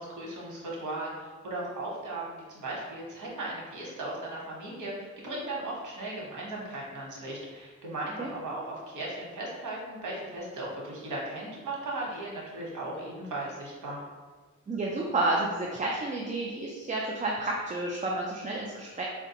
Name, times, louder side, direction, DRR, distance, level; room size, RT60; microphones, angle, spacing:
voice 1, 0.0-14.0, right 2 dB, 90° right, -3 dB, 1.0 m, -37 dB
voice 2, 14.7-19.0, right 2 dB, 25° right, -2 dB, 0.4 m, -30 dB
4.7 x 2.2 x 2.8 m, 1.4 s
cardioid pair, 80°, 30 cm